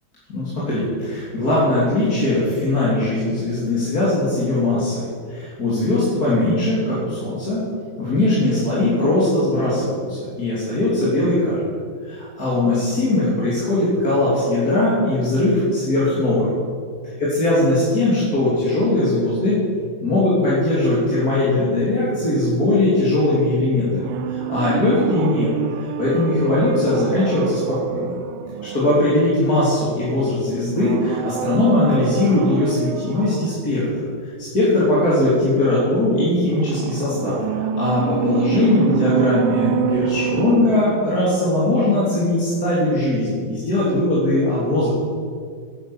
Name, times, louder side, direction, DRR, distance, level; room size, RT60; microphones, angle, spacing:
voice 1, 0.3-7.6 8.0-11.7 12.0-16.5 17.2-19.6 20.0-25.5 25.8-28.1 28.7-33.8 34.4-37.4 37.8-44.9, left 2 dB, 45° left, -9 dB, 3.7 m, -20 dB
sound 1, 23.9-29.6 30.7-33.7 36.5-41.7 42.0-42.1, right 9 dB, 85° right, 1.5 m, -26 dB
11.5 x 9.9 x 7.3 m, 2.1 s
omnidirectional pair, 2.2 m